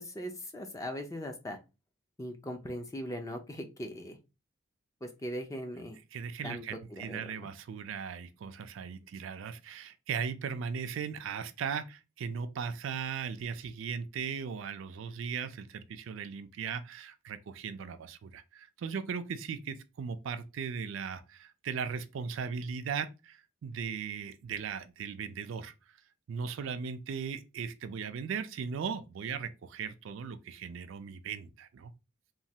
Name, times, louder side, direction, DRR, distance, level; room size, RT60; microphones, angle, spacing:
voice 1, 0.0-1.6 2.2-4.2 5.0-6.0 6.4-6.6 6.9-7.5, equal, 15° left, 0.4 m, -39 dB
voice 2, 6.1-25.7 26.3-31.9, right 6 dB, 65° right, 0.3 m, -38 dB
3.1 x 2.3 x 2.7 m
head